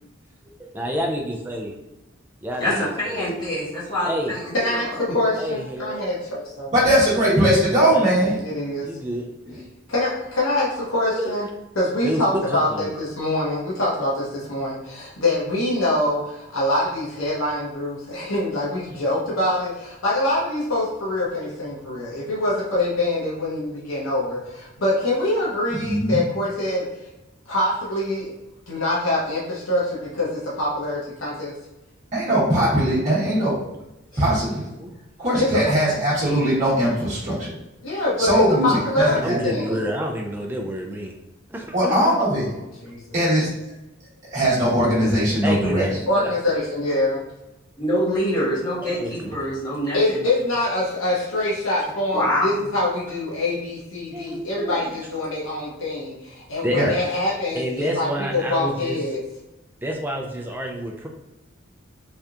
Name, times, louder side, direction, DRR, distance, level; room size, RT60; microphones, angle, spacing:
voice 1, 0.7-1.7 2.4-3.2 4.0-4.3 4.6-4.8 5.4-6.0 7.3-7.4 7.9-8.4 8.8-9.3 11.2-11.3 12.0-12.9 22.4-22.6 34.8-35.0 39.2-41.1 41.5-42.2 45.4-46.6 48.8-49.4 54.1-54.9 56.6-57.0 57.5-59.0 59.8-61.1, equal, 10° right, 1 dB, 0.3 m, -29 dB
voice 2, 2.6-4.9 34.1-34.2 47.8-50.3 52.1-52.5, equal, 20° left, -10 dB, 1.2 m, -25 dB
voice 3, 4.5-6.7 8.4-8.9 9.9-11.5 11.7-26.9 27.5-28.3 28.7-31.5 35.4-35.5 37.8-39.9 42.8-43.0 46.1-47.2 49.9-59.2, left 1 dB, 80° left, -6 dB, 0.9 m, -24 dB
voice 4, 6.7-8.4 9.5-9.6 25.7-26.2 32.1-33.6 34.2-34.7 35.2-37.5 38.2-39.4 41.7-42.5 43.1-43.5 44.3-46.0 56.7-56.9, right 1 dB, 35° right, -9 dB, 1.0 m, -20 dB
3.3 x 2.7 x 2.4 m, 0.95 s
head